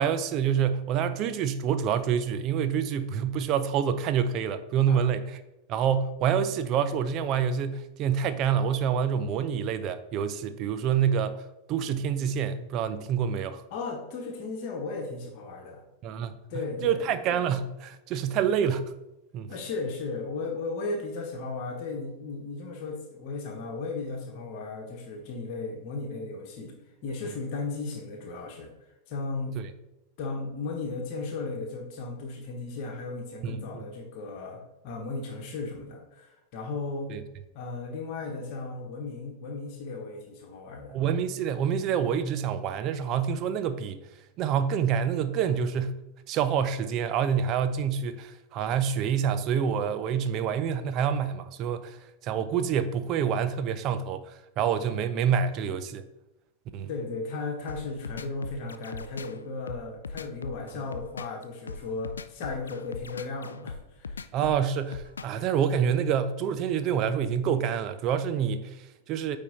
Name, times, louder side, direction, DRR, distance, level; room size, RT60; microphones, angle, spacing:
voice 1, 0.0-5.2 5.7-13.6 16.0-16.3 16.8-18.9 19.3-19.5 29.6-29.7 33.4-33.9 37.1-37.2 40.9-44.0 44.4-46.0 46.3-56.1 56.7-56.9 64.3-69.4, right 8 dB, 35° right, 0.5 m, -27 dB
voice 2, 13.7-15.8 16.5-17.1 19.5-26.7 27.0-28.7 29.1-29.6 30.2-37.1 37.5-41.0 56.9-64.2, left 3 dB, 45° left, 1.3 m, -35 dB
sound 1, 57.7-65.4, left 4 dB, 75° left, 0.3 m, -39 dB
9.0 x 3.5 x 4.1 m
figure-of-eight pair, 90°, 0 cm